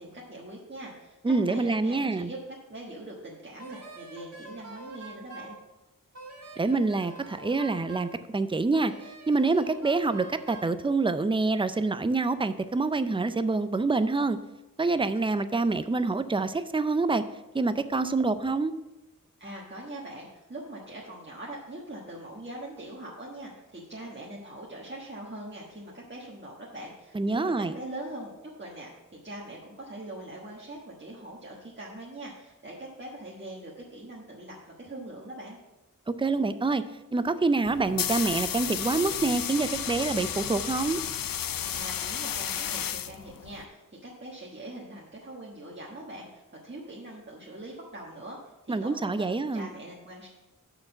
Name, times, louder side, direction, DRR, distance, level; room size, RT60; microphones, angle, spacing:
voice 1, 0.0-2.4 2.7-5.6 19.4-28.3 28.6-35.6 41.4-49.3 49.5-50.3, right 1 dB, 35° right, -5 dB, 1.3 m, -42 dB
voice 2, 1.2-2.3 6.6-8.9 9.3-14.4 14.8-17.2 17.5-18.7 27.1-27.7 36.1-36.8 37.1-41.0 48.7-49.7, right 3 dB, 15° right, 11 dB, 0.4 m, -26 dB
Wind instrument woodwind instrument, 3.6-5.6 6.1-8.2 8.7-10.7, right 3 dB, 50° right, 1.5 m, -45 dB
sound 1, 37.6-43.6, left 9 dB, 75° left, 0.5 m, -33 dB
6.5 x 6.0 x 5.8 m, 0.99 s
wide cardioid pair, 85°, 34 cm